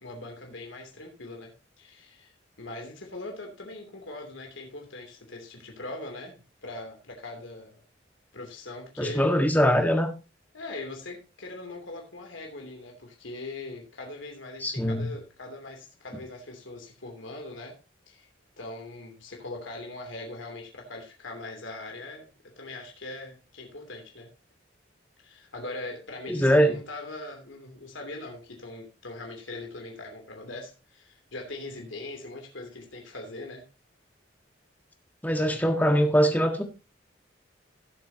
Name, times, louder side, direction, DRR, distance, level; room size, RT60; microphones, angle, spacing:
voice 1, 0.0-2.3 2.6-7.8 8.3-9.2 10.5-17.7 18.1-18.3 18.6-22.3 22.6-24.3 25.2-33.7, left 2 dB, 85° left, 2 dB, 3.0 m, -41 dB
voice 2, 9.0-10.1 14.6-15.1 26.3-26.8 35.2-36.6, equal, 10° left, 5 dB, 1.5 m, -22 dB
17.5 x 7.6 x 2.8 m, 0.29 s
head